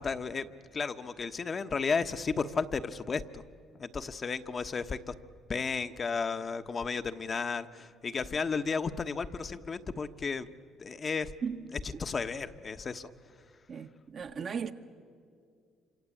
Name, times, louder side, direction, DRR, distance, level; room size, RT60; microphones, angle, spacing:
voice 1, 0.0-3.4 3.8-5.1 5.5-10.5 10.8-11.3 11.7-13.5, left 5 dB, 40° left, 1.2 m, -33 dB
voice 2, 13.7-14.7, right 6 dB, 55° right, 1.6 m, -36 dB
27.5 x 25.5 x 8.6 m
supercardioid pair, 65°, 0 cm